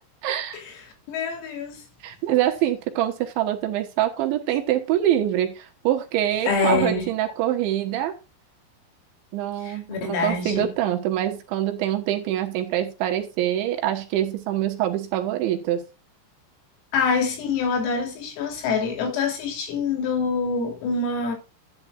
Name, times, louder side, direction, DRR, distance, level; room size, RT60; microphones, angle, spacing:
voice 1, 0.2-0.6 2.0-8.1 9.3-15.8, right 12 dB, 70° right, 3.3 m, -25 dB
voice 2, 1.1-1.8 6.5-7.1 9.6-10.7 16.9-21.4, left 4 dB, 85° left, 5.9 m, -25 dB
12.0 x 9.5 x 2.4 m
omnidirectional pair, 6.0 m